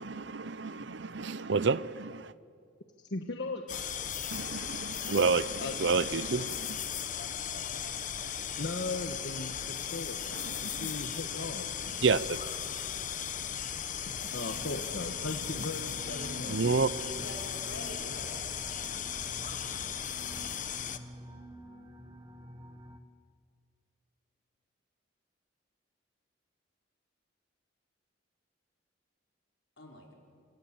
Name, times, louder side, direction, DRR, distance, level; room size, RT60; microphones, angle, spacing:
voice 1, 0.0-2.3 4.3-6.8 10.3-10.9 12.0-12.5 16.5-16.9, right 4 dB, 65° right, 17 dB, 0.7 m, -30 dB
voice 2, 3.1-3.9 5.6-5.7 8.6-10.3 10.6-12.0 14.1-16.6, left 2 dB, 60° left, 4 dB, 1.4 m, -38 dB
sound 1, 3.7-21.0, left 8 dB, 40° left, 1.1 m, -37 dB
sound 2, 14.4-23.0, right 1 dB, 20° right, 1.3 m, -49 dB
voice 3, 16.8-18.4 29.8-30.1, left 1 dB, 80° left, 0 dB, 4.8 m, -45 dB
27.5 x 27.0 x 7.4 m, 2.2 s
head